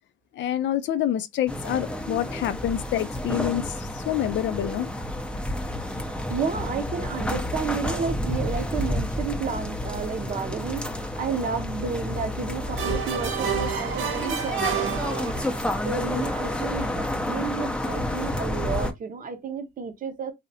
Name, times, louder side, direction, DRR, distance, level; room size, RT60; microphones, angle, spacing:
voice 1, 0.4-4.9, left 11 dB, 65° left, 0.4 m, -27 dB
sound 1, 1.5-18.9, left 1 dB, 5° left, 0.5 m, -30 dB
voice 2, 6.1-15.4 15.8-20.3, right 5 dB, 45° right, 0.7 m, -32 dB
sound 2, 12.8-15.7, right 8 dB, 85° right, 0.6 m, -29 dB
2.7 x 2.0 x 2.7 m
cardioid pair, 90°, 20 cm